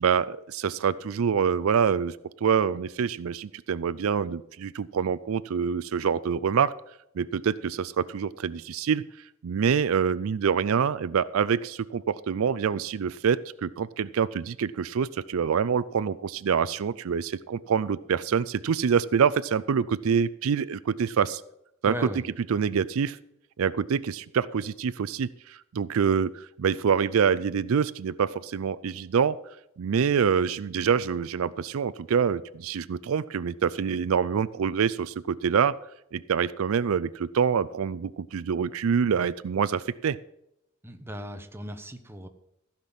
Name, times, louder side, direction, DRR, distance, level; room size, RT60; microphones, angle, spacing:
voice 1, 0.0-2.2 2.4-6.7 7.2-9.0 9.4-21.4 21.8-22.1 22.5-23.2 23.6-29.4 29.8-35.8 36.1-40.2, right 7 dB, 75° right, 17 dB, 0.4 m, -26 dB
voice 2, 21.9-22.2 40.8-42.3, equal, 10° right, 6 dB, 1.0 m, -37 dB
15.0 x 5.9 x 7.2 m, 0.80 s
head